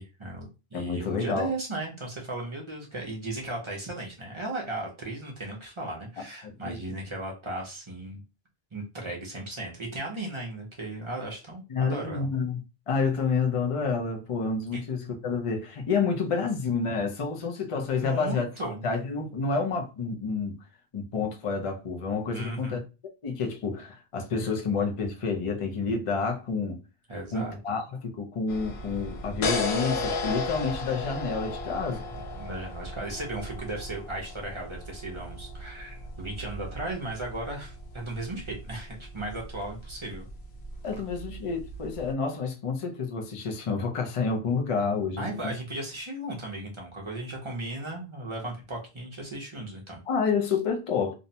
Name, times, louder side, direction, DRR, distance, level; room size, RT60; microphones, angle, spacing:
voice 1, 0.0-8.2 8.7-12.3 14.7-14.8 18.0-18.8 22.3-22.8 27.1-27.6 31.9-40.3 45.2-50.0, right 2 dB, 35° right, 0.6 m, -36 dB
voice 2, 0.7-1.5 6.4-7.0 11.7-12.6 12.9-18.5 18.8-20.6 20.9-22.8 23.2-26.8 27.3-32.0 40.8-45.5 50.1-51.1, left 5 dB, 45° left, 0.5 m, -29 dB
sound 1, 28.5-42.1, left 3 dB, 85° left, 0.8 m, -36 dB
2.6 x 2.1 x 2.7 m
omnidirectional pair, 1.0 m